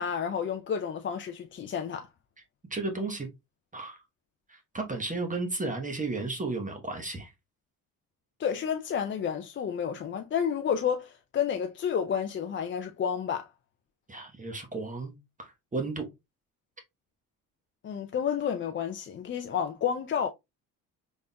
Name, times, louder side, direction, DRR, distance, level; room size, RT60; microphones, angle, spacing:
voice 1, 0.0-2.1 8.4-13.5 17.8-20.3, left 8 dB, 35° left, 0.4 m, -30 dB
voice 2, 2.7-3.3 3.7-4.0 4.5-7.3 14.1-15.1 15.4-16.1, right 3 dB, 20° right, 1.0 m, -33 dB
4.2 x 3.4 x 2.2 m
cardioid pair, 85°, 36 cm